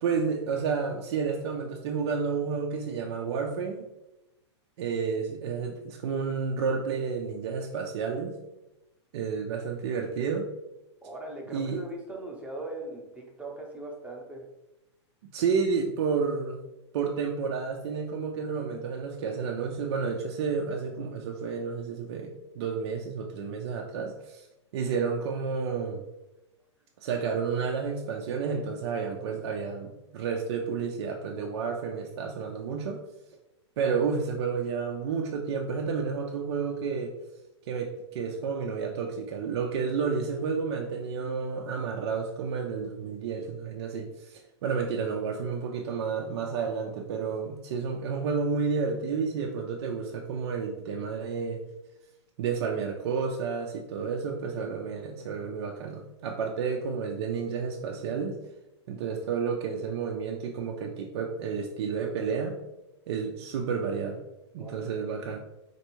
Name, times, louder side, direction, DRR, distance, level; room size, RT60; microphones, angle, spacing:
voice 1, 0.0-3.8 4.8-8.4 9.1-10.5 11.5-11.8 15.3-16.6 16.9-24.5 24.7-26.0 27.0-33.0 33.8-37.1 37.7-51.6 52.4-58.4 58.9-62.6 63.1-64.2 64.5-65.4, right 5 dB, 60° right, 1 dB, 0.5 m, -31 dB
voice 2, 11.0-14.5 64.6-65.1, right 2 dB, 10° right, -2 dB, 0.7 m, -40 dB
4.2 x 2.6 x 2.9 m, 0.95 s
hypercardioid pair, 115°, 15 cm